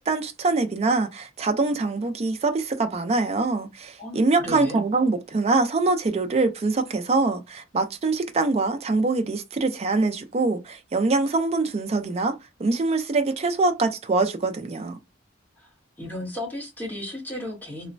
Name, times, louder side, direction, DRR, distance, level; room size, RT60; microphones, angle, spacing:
voice 1, 0.0-15.0, right 3 dB, 35° right, 0.4 m, -24 dB
voice 2, 4.0-4.8 15.6-15.7 16.0-17.9, left 1 dB, 10° left, 1.0 m, -34 dB
3.0 x 2.1 x 2.5 m
head